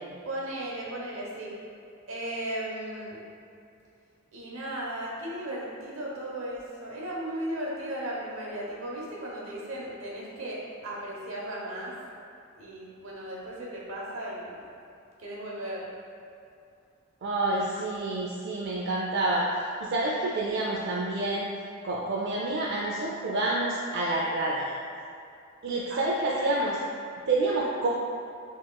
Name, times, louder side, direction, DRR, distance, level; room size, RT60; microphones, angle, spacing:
voice 1, 0.2-1.5 2.1-3.2 4.3-11.9 12.6-14.5 15.2-15.9 25.9-26.1, right 1 dB, 80° right, -4 dB, 0.9 m, -36 dB
voice 2, 17.2-19.5 19.8-21.5 21.8-24.8 25.6-26.8 27.3-27.9, right 2 dB, 60° right, -5 dB, 0.4 m, -28 dB
6.2 x 2.9 x 2.2 m, 2.5 s
head